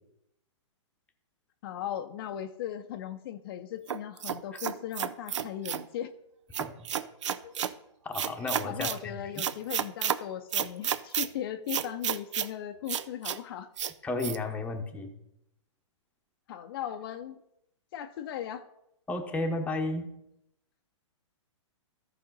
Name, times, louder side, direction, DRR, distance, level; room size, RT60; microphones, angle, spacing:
voice 1, 1.6-6.2 7.4-7.5 8.6-13.7 16.5-17.4 17.9-18.6, left 10 dB, 50° left, 7 dB, 0.6 m, -38 dB
sound 1, 3.9-5.9 6.5-7.7 8.1-9.0 9.4-10.2 10.5-11.3 11.7-12.5 12.9-13.4 13.8-13.9 14.2-14.4, right 9 dB, 70° right, 0.5 m, -31 dB
voice 2, 6.6-6.9 8.0-9.3 14.0-15.1 19.1-20.1, left 2 dB, 10° left, 3 dB, 0.9 m, -33 dB
14.0 x 5.0 x 4.0 m, 0.82 s
hypercardioid pair, 140°, 16 cm